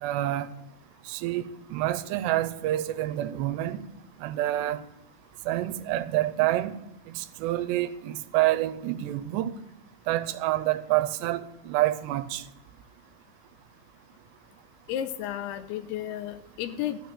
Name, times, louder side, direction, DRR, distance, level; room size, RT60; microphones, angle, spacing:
voice 1, 0.0-0.5 1.1-1.5 1.7-3.8 4.2-4.8 5.5-6.7 7.1-9.5 10.1-12.4, right 14 dB, 85° right, 2.8 m, -27 dB
voice 2, 14.9-17.0, left 11 dB, 80° left, 2.5 m, -33 dB
14.5 x 6.5 x 8.6 m
omnidirectional pair, 4.9 m